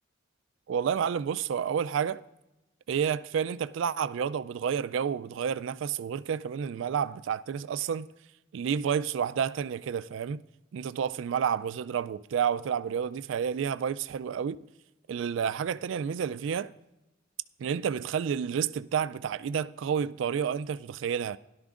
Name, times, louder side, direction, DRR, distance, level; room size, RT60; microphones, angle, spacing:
voice 1, 0.7-2.2 2.9-8.1 8.5-10.4 10.7-14.6 15.1-16.7 17.6-21.4, right 7 dB, 65° right, 0.3 m, -30 dB
16.5 x 11.5 x 2.5 m
head